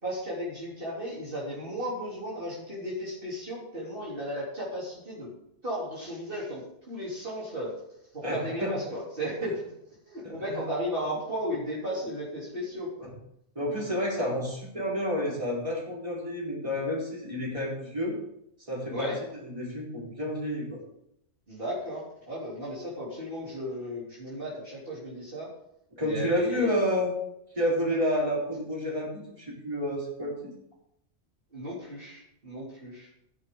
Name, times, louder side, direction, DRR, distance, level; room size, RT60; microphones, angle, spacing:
voice 1, 0.0-5.3 5.6-7.7 8.1-9.6 10.0-13.1 18.9-19.2 21.5-25.5 26.0-26.8 31.5-33.1, equal, 45° right, -6 dB, 3.6 m, -35 dB
voice 2, 8.2-8.7 10.2-10.6 13.5-18.2 18.7-19.1 19.4-20.8 26.0-27.2 27.5-30.5, equal, 25° right, -5 dB, 4.2 m, -30 dB
16.5 x 10.5 x 3.8 m, 0.77 s
omnidirectional pair, 1.3 m